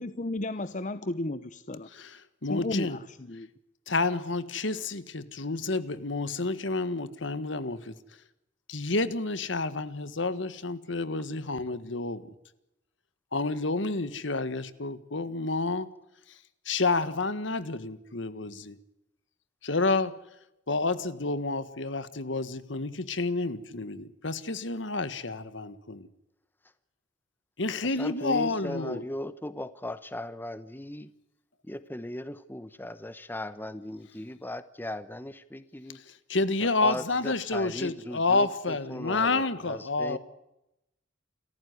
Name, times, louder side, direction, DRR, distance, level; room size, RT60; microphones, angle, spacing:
voice 1, 0.0-1.9 2.5-3.5, left 2 dB, 40° left, 12 dB, 0.9 m, -33 dB
voice 2, 1.9-3.0 3.9-7.9 8.7-12.2 13.3-15.9 16.7-18.8 19.6-20.1 20.7-26.1 27.6-29.0 36.3-40.2, left 3 dB, 70° left, 14 dB, 1.6 m, -29 dB
voice 3, 27.8-31.1 31.6-36.0 36.6-40.2, left 1 dB, 10° left, 14 dB, 0.9 m, -38 dB
28.5 x 14.5 x 9.5 m, 0.90 s
head